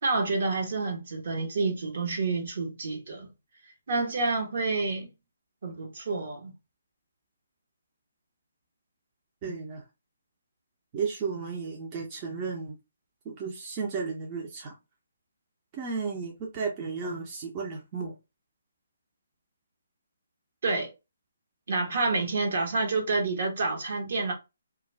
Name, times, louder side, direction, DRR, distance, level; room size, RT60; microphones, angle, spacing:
voice 1, 0.0-3.3 3.9-5.1 5.6-6.5 20.6-20.9 21.7-24.3, right 3 dB, 60° right, 0.9 m, -28 dB
voice 2, 9.4-9.8 10.9-12.8 13.2-14.7 15.7-18.1, right 5 dB, 30° right, 0.6 m, -33 dB
2.3 x 2.2 x 3.1 m
figure-of-eight pair, 145°, 0 cm